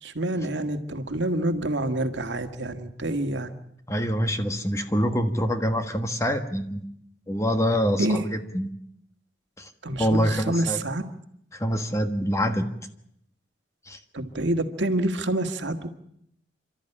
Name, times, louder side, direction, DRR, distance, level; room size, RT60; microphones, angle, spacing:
voice 1, 0.0-3.5 8.0-8.2 9.8-11.0 14.1-15.9, right 1 dB, 70° right, 7 dB, 1.8 m, -27 dB
voice 2, 3.9-6.9 7.3-8.7 9.6-9.7 10.0-10.8 11.5-12.7 13.8-14.0, equal, 15° left, 7 dB, 1.5 m, -25 dB
28.0 x 13.0 x 10.0 m, 0.75 s
head